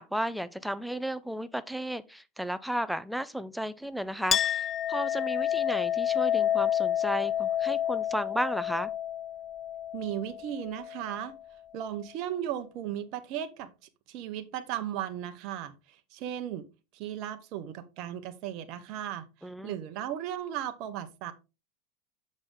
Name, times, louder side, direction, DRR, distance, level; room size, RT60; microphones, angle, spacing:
voice 1, 0.0-8.9 19.4-19.8, equal, ahead, 0.7 m, -34 dB
Chink clink, 4.3-11.4, left 10 dB, 35° left, 0.4 m, -29 dB
voice 2, 9.9-11.3 11.7-13.7 14.1-16.6 16.9-21.3, right 11 dB, 55° right, 0.9 m, -36 dB
7.5 x 6.3 x 3.7 m
hypercardioid pair, 85°, 0 cm